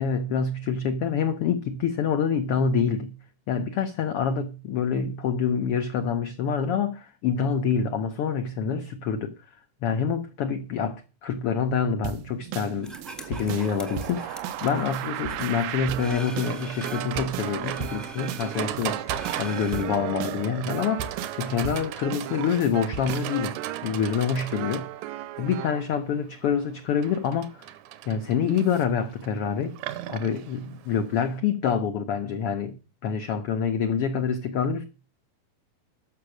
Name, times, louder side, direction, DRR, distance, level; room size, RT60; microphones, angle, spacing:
voice 1, 0.0-3.2 3.5-9.3 9.8-12.9 13.2-19.1 19.4-24.9 25.4-27.7 28.1-29.7 30.1-32.7 33.0-34.8, left 6 dB, 80° left, 1.3 m, -26 dB
sound 1, 12.0-25.9, right 11 dB, 85° right, 2.5 m, -36 dB
sound 2, 12.8-17.2 17.6-19.8, right 1 dB, ahead, 0.6 m, -42 dB
Livestock farm animals working animals, 13.3-31.4, right 12 dB, 70° right, 2.1 m, -38 dB
13.5 x 6.0 x 6.4 m
omnidirectional pair, 3.8 m